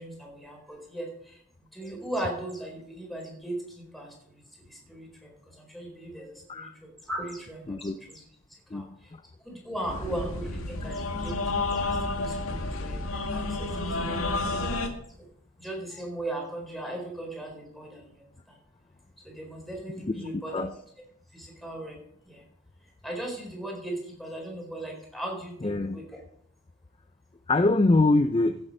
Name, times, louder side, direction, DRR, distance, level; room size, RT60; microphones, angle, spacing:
voice 1, 0.0-1.4 1.7-3.6 3.9-4.1 4.7-5.3 5.6-8.2 8.7-8.8 9.4-11.3 11.7-11.9 12.2-13.7 14.1-14.2 15.6-18.1 19.2-20.7 21.3-22.0 22.3-22.4 23.0-26.2, right 1 dB, ahead, -1 dB, 4.2 m, -37 dB
voice 2, 8.7-9.2 20.0-20.7 25.6-26.0 27.5-28.6, left 2 dB, 25° left, 10 dB, 0.4 m, -24 dB
sound 1, 9.9-14.9, left 2 dB, 75° left, 1.9 m, -30 dB
16.0 x 8.1 x 5.4 m, 0.70 s
head